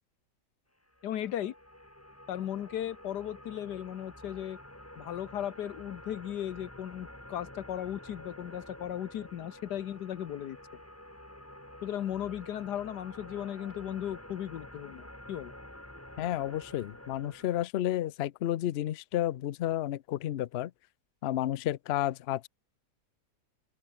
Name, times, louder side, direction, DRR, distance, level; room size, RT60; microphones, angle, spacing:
sound 1, 0.9-17.6, left 1 dB, 10° left, 2.7 m, -49 dB
voice 1, 1.0-1.5 2.3-4.6 5.0-10.6 11.8-15.5, left 11 dB, 90° left, 1.6 m, -36 dB
voice 2, 16.2-20.7 21.2-22.5, left 13 dB, 65° left, 0.6 m, -31 dB
open air
omnidirectional pair, 1.7 m